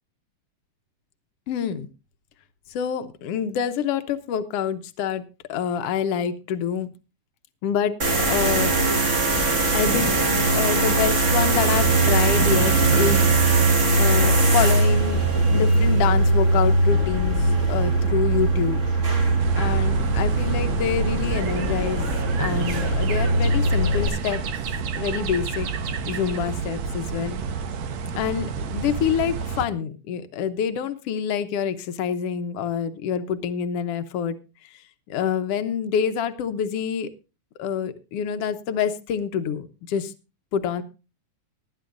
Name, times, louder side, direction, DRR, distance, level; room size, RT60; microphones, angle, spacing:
voice 1, 1.5-1.9 2.7-5.2 5.5-6.9 7.6-8.8 9.7-10.1 10.5-13.2 14.0-15.2 15.5-18.9 19.5-22.1 22.4-24.4 25.0-25.7 26.1-27.4 28.1-34.4 34.7-34.8 35.1-37.1 37.6-40.1 40.5-40.8, left 8 dB, 65° left, 10 dB, 1.8 m, -26 dB
sound 1, 8.0-24.1, right 2 dB, 30° right, 1.8 m, -20 dB
sound 2, 19.4-29.7, right 5 dB, 70° right, 2.2 m, -30 dB
20.0 x 10.5 x 2.6 m, 0.30 s
omnidirectional pair, 3.4 m